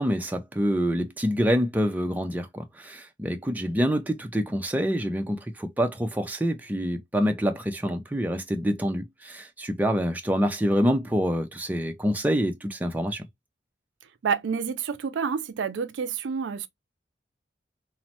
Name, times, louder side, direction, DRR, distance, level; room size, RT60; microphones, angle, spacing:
voice 1, 0.0-13.3, equal, 10° right, 0.4 m, -26 dB
voice 2, 14.2-16.7, right 6 dB, 80° right, 0.4 m, -28 dB
3.0 x 2.0 x 2.8 m
head